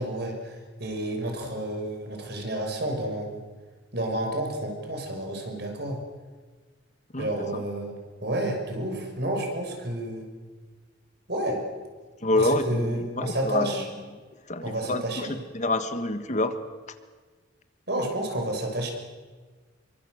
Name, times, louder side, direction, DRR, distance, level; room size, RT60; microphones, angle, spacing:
voice 1, 0.0-3.4 3.9-6.0 7.2-7.9 8.2-10.3 11.3-11.6 12.3-13.9 14.6-15.4 17.9-18.9, right 1 dB, 55° right, 3 dB, 6.0 m, -30 dB
voice 2, 7.1-7.6 12.2-13.8 14.5-15.3 15.5-16.6, left 2 dB, 40° left, 9 dB, 1.5 m, -27 dB
27.0 x 23.5 x 8.0 m, 1.4 s
head